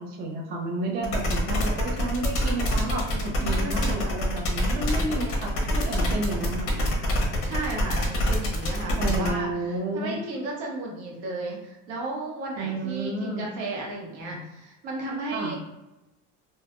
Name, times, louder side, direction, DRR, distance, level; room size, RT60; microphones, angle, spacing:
voice 1, 0.0-6.9 8.9-10.2 12.6-13.4 15.3-15.5, right 2 dB, 30° right, 0 dB, 0.4 m, -31 dB
sound 1, 1.0-9.3, left 1 dB, 40° left, 0.5 m, -26 dB
voice 2, 2.9-4.0 7.4-15.6, right 2 dB, 90° right, -1 dB, 0.9 m, -34 dB
2.2 x 2.0 x 2.8 m, 0.96 s
cardioid pair, 145°, 34 cm